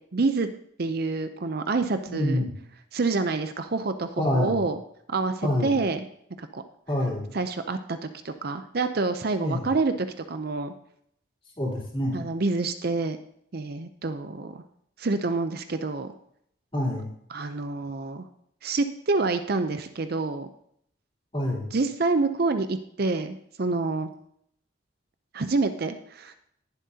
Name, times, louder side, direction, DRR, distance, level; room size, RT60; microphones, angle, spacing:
voice 1, 0.1-0.5 0.8-2.4 2.9-4.8 5.1-6.0 6.4-6.6 7.3-8.0 8.2-10.7 12.1-13.2 13.5-14.6 15.0-16.1 17.3-18.3 18.6-20.5 21.7-24.1 25.3-26.3, right 3 dB, 50° right, 9 dB, 0.6 m, -27 dB
voice 2, 2.1-2.5 4.2-4.7 5.4-5.7 6.9-7.3 9.4-9.6 11.6-12.2 16.7-17.1 21.3-21.7, left 1 dB, 30° left, -4 dB, 3.3 m, -27 dB
19.5 x 7.5 x 2.8 m, 0.70 s
head